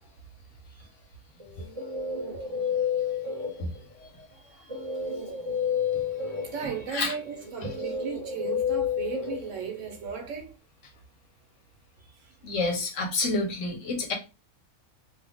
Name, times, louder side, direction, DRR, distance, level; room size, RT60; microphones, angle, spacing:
Guitar, 1.4-3.9 4.7-10.1, left 6 dB, 25° right, 1.0 m, -31 dB
voice 1, 6.1-10.5, right 7 dB, 65° right, 1.2 m, -36 dB
voice 2, 12.4-14.1, left 3 dB, 65° left, 1.2 m, -29 dB
2.9 x 2.4 x 3.4 m
omnidirectional pair, 1.4 m